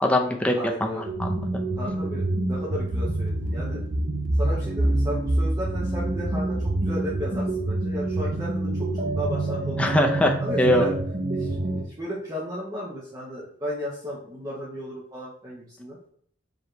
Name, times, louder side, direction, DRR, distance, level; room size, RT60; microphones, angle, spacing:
voice 1, 0.0-0.5 0.8-1.6 9.8-10.9, left 1 dB, 5° left, 2 dB, 0.5 m, -22 dB
voice 2, 0.5-1.1 1.8-3.8 4.4-9.8 10.4-10.9 11.3-11.5 12.0-16.0, equal, 20° right, -7 dB, 0.9 m, -34 dB
sound 1, 1.1-11.8, right 1 dB, 45° right, 0.6 m, -26 dB
4.9 x 3.0 x 3.1 m, 0.64 s
head